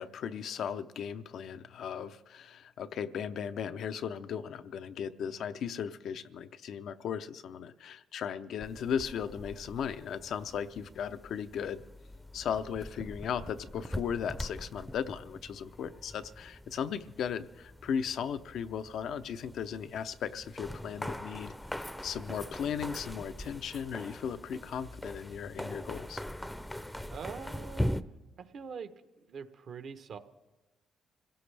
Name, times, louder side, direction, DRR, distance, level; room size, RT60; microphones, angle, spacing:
voice 1, 0.0-11.8 12.3-21.5 22.0-26.2, left 7 dB, 70° left, 10 dB, 0.6 m, -36 dB
sound 1, 8.6-28.0, equal, 5° left, 0.6 m, -42 dB
voice 2, 27.1-28.0 28.4-28.9 29.3-30.2, right 6 dB, 60° right, 10 dB, 1.0 m, -43 dB
25.0 x 17.0 x 3.4 m, 1.1 s
cardioid pair, 90°, 0 cm